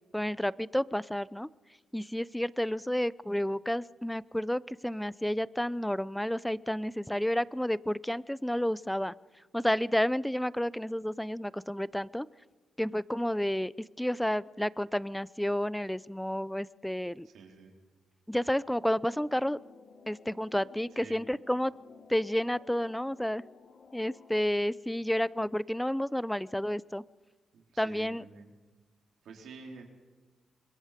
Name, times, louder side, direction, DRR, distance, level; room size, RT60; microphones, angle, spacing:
voice 1, 0.1-1.5 1.9-9.1 9.5-12.3 12.8-17.3 18.3-19.6 20.1-21.7 22.1-23.4 23.9-27.0 27.8-28.2, equal, 5° left, 20 dB, 0.6 m, -31 dB
voice 2, 17.2-17.7 20.9-21.2 27.5-28.5 29.2-29.8, right 4 dB, 75° right, 1 dB, 4.1 m, -49 dB
sound 1, 18.8-24.4, left 4 dB, 60° left, 2.7 m, -55 dB
25.5 x 22.0 x 5.2 m, 1.3 s
supercardioid pair, 55°, 0 cm